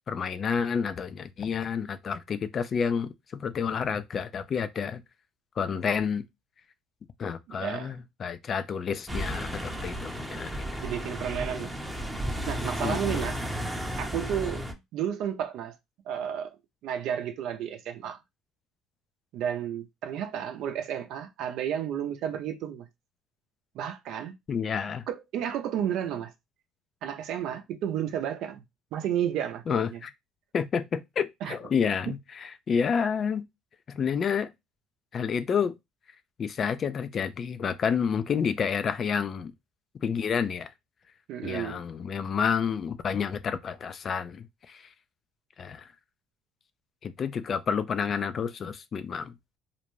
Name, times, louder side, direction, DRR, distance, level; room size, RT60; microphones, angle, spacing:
voice 1, 0.1-5.0 5.6-6.2 7.2-10.8 12.8-13.3 24.5-25.0 29.7-30.1 30.5-33.5 33.9-34.5 35.1-35.7 36.4-39.5 40.0-40.7 41.4-44.9 45.6-45.9 47.0-49.3, left 6 dB, 45° left, 0.4 m, -29 dB
voice 2, 7.6-7.9 10.8-11.8 12.5-13.4 14.0-15.8 16.1-16.6 16.8-18.2 19.3-22.9 23.7-24.3 25.1-26.3 27.0-28.6 28.9-30.0 31.4-31.6 32.1-32.2 41.3-41.8, right 9 dB, 65° right, 0.6 m, -32 dB
sound 1, 9.1-14.7, equal, 5° right, 0.7 m, -33 dB
2.5 x 2.1 x 3.1 m
supercardioid pair, 85°, 0 cm